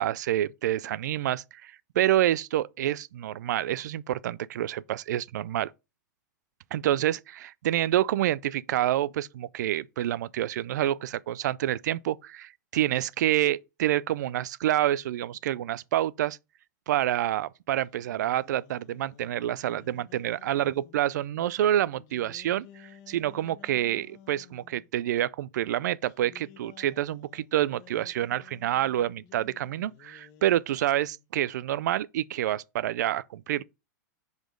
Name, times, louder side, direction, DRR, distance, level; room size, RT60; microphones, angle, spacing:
voice 1, 0.0-5.7 6.7-16.4 16.9-33.6, right 12 dB, 75° right, 0.4 m, -28 dB
sound 1, 17.8-21.1 21.9-24.9 26.0-31.3, left 10 dB, 40° left, 0.9 m, -54 dB
5.1 x 4.0 x 5.0 m
hypercardioid pair, 130°, 10 cm